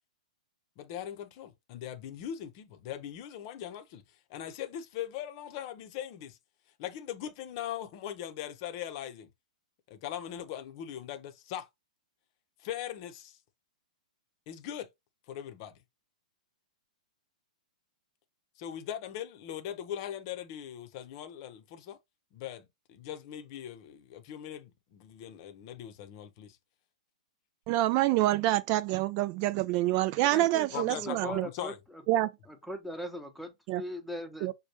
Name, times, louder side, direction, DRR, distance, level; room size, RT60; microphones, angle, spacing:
voice 1, 0.8-4.0 4.3-6.4 6.8-9.3 9.9-11.7 12.6-13.4 14.5-14.9 15.3-15.8 18.6-22.0 22.3-26.6 30.7-31.8, left 10 dB, 45° left, 0.7 m, -40 dB
voice 2, 27.7-31.5 32.1-32.3 33.7-33.8 34.4-34.5, right 15 dB, 40° right, 0.3 m, -27 dB
voice 3, 30.2-32.0 32.5-34.5, equal, ahead, 0.8 m, -40 dB
5.1 x 2.2 x 3.0 m
hypercardioid pair, 115°, 4 cm